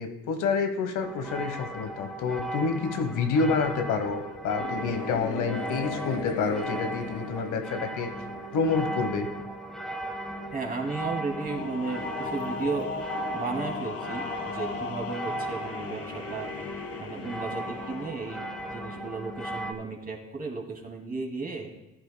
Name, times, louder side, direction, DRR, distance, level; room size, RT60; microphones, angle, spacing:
voice 1, 0.0-8.1 8.5-9.3, left 4 dB, 80° left, 6 dB, 1.2 m, -28 dB
sound 1, 1.0-19.7, right 1 dB, ahead, 1.4 m, -37 dB
sound 2, 4.6-9.1 11.2-19.0, left 4 dB, 50° left, 1.1 m, -37 dB
voice 2, 10.5-12.9 13.3-16.5 17.0-21.7, right 3 dB, 30° right, 1 dB, 2.4 m, -34 dB
16.5 x 10.5 x 2.2 m, 0.98 s
cardioid pair, 90°, 30 cm